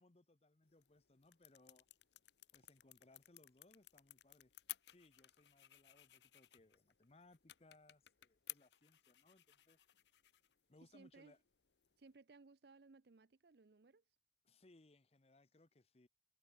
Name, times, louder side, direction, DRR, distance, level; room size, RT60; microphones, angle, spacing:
voice 1, 0.0-1.9 2.5-4.5 4.9-9.8 10.7-11.4 14.4-16.1, left 2 dB, 35° left, 0.8 m, -68 dB
sound 1, 0.6-12.2, left 16 dB, 75° left, 0.9 m, -58 dB
voice 2, 10.9-11.4 12.0-14.0 14.5-14.6, right 3 dB, 65° right, 0.6 m, -63 dB
head